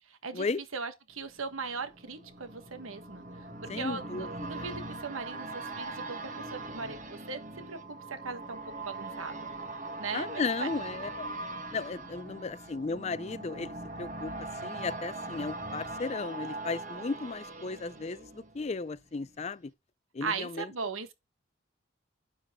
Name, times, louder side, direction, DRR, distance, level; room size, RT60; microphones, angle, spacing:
voice 1, 0.1-0.5 0.7-3.2 3.6-7.4 7.7-9.5 10.0-10.7 20.2-21.1, right 4 dB, 90° right, 1.4 m, -38 dB
sound 1, 1.2-19.0 19.4-19.5, right 2 dB, 40° right, 1.3 m, -41 dB
voice 2, 3.7-4.3 4.6-4.7 10.1-11.3 11.7-14.3 14.6-19.7 20.1-20.7, left 4 dB, 30° left, 0.4 m, -35 dB
9.3 x 7.2 x 3.7 m
head